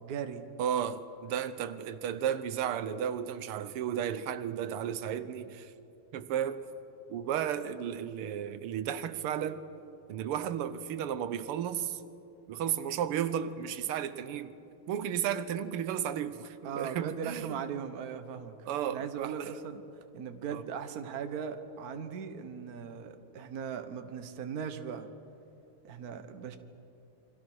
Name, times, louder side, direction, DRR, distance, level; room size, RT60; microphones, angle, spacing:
voice 1, 0.0-0.5 16.6-19.8 20.1-25.1 25.8-26.6, right 7 dB, 50° right, 8 dB, 1.5 m, -39 dB
voice 2, 0.6-5.7 6.1-6.6 7.1-9.6 10.1-12.0 12.5-14.5 14.9-17.6 18.7-19.5 20.5-20.6, right 9 dB, 85° right, 12 dB, 1.8 m, -33 dB
28.5 x 24.5 x 6.2 m, 2.8 s
omnidirectional pair, 2.4 m